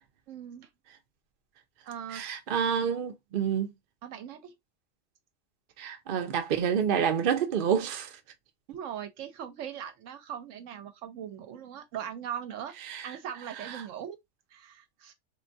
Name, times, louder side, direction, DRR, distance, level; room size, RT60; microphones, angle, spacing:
voice 1, 0.3-0.7 1.9-2.2 4.0-4.5 8.7-12.7 13.0-14.2 14.5-15.1, right 9 dB, 75° right, 0.9 m, -40 dB
voice 2, 2.1-3.7 5.8-8.1 12.9-13.1 13.7-13.8, right 8 dB, 50° right, 0.7 m, -28 dB
3.7 x 2.2 x 2.6 m
omnidirectional pair, 1.4 m